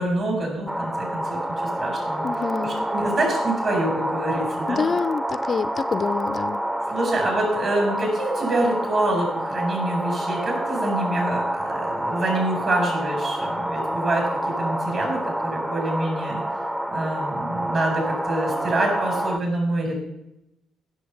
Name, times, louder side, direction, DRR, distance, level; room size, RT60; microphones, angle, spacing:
voice 1, 0.0-4.8 6.9-16.4 16.9-20.0, right 1 dB, 50° right, 1 dB, 5.5 m, -26 dB
sound 1, 0.7-19.4, right 1 dB, 10° right, 0.8 m, -28 dB
voice 2, 2.2-2.9 4.7-6.6, left 5 dB, 40° left, 14 dB, 0.5 m, -26 dB
16.0 x 6.9 x 5.1 m, 0.87 s
figure-of-eight pair, 50°, 0 cm